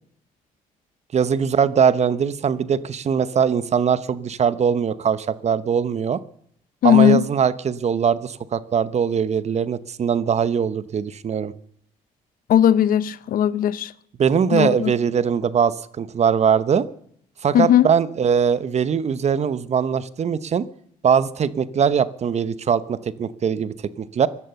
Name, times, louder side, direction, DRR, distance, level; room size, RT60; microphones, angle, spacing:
voice 1, 1.1-6.2 6.8-11.5 14.2-16.9 17.4-20.7 21.0-24.3, right 7 dB, 45° right, 0.9 m, -21 dB
voice 2, 6.8-7.2 12.5-13.9 14.5-14.9 17.5-17.9, left 10 dB, 70° left, 0.8 m, -17 dB
17.0 x 12.0 x 6.9 m
cardioid pair, 75°, 15 cm